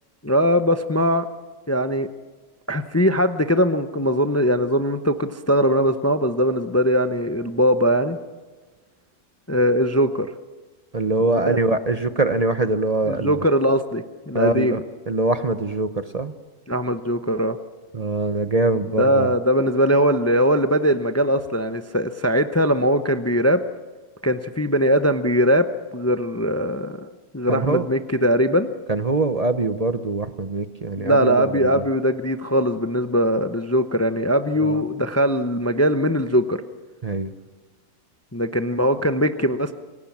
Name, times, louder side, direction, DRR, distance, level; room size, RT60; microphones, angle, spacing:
voice 1, 0.2-1.3 1.7-2.1 2.7-8.2 9.5-10.3 11.5-11.6 13.1-14.8 16.7-17.6 19.0-23.6 24.2-25.7 25.9-28.7 31.0-36.6 38.3-39.7, equal, 20° left, 9 dB, 0.3 m, -20 dB
voice 2, 10.9-13.4 14.3-14.8 15.1-16.3 17.9-19.3 27.5-27.8 28.9-31.8 34.6-34.8 37.0-37.3, right 2 dB, 35° right, 10 dB, 0.7 m, -23 dB
27.5 x 17.0 x 7.3 m, 1.3 s
omnidirectional pair, 1.6 m